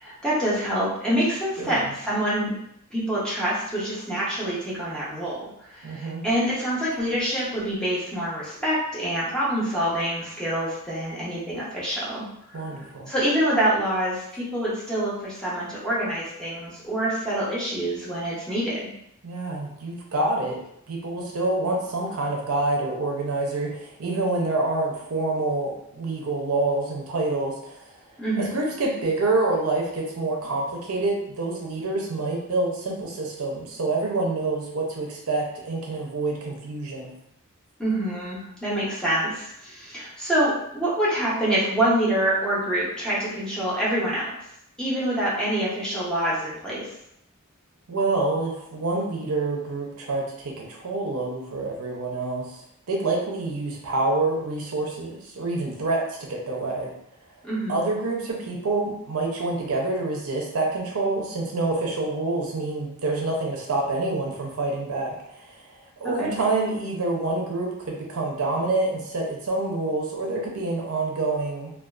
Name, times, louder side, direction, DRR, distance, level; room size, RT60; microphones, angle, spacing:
voice 1, 0.0-2.5 2.9-12.3 12.5-12.6 13.1-18.9 28.2-28.5 37.8-44.3 44.8-46.9 57.4-57.8 66.2-66.4, right 1 dB, 5° left, -8 dB, 0.6 m, -26 dB
voice 2, 1.6-1.9 5.8-6.2 12.5-13.1 19.2-20.6 20.9-27.9 28.4-37.1 47.9-52.6 52.9-56.9 57.7-65.6 66.0-71.7, right 2 dB, 70° right, -1 dB, 0.5 m, -27 dB
2.4 x 2.2 x 2.2 m, 0.76 s
head